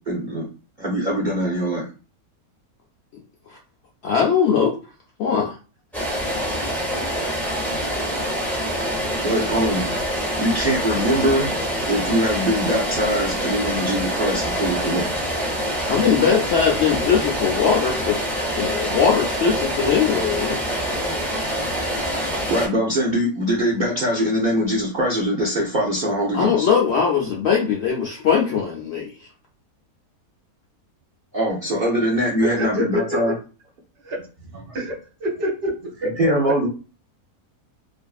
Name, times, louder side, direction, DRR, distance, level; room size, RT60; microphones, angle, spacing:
voice 1, 0.1-0.5 0.8-1.9 9.2-9.9 10.4-11.5 11.9-15.1 22.5-26.7 31.3-33.3 36.2-36.7, equal, 75° right, -4 dB, 0.4 m, -22 dB
voice 2, 4.0-4.8 5.2-5.5 15.9-18.2 18.5-20.6 26.3-29.1, left 7 dB, 80° left, -2 dB, 0.5 m, -20 dB
sound 1, 5.9-22.7, equal, ahead, 0.5 m, -25 dB
voice 3, 32.4-33.3 34.0-34.3 34.5-36.3, left 1 dB, 55° right, -1 dB, 0.9 m, -27 dB
2.5 x 2.5 x 2.3 m, 0.35 s
omnidirectional pair, 1.7 m